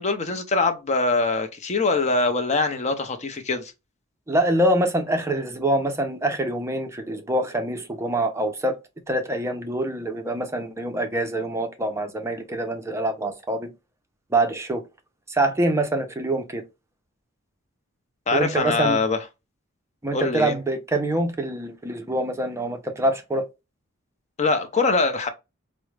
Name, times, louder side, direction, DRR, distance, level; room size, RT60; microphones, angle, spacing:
voice 1, 0.0-3.7 18.3-19.2 20.1-20.6 24.4-25.3, left 3 dB, 35° left, 0.5 m, -23 dB
voice 2, 4.3-8.7 9.1-13.7 14.3-14.8 15.3-16.6 18.3-19.0 20.0-23.4, right 1 dB, 15° right, 0.5 m, -25 dB
4.6 x 2.1 x 3.2 m
head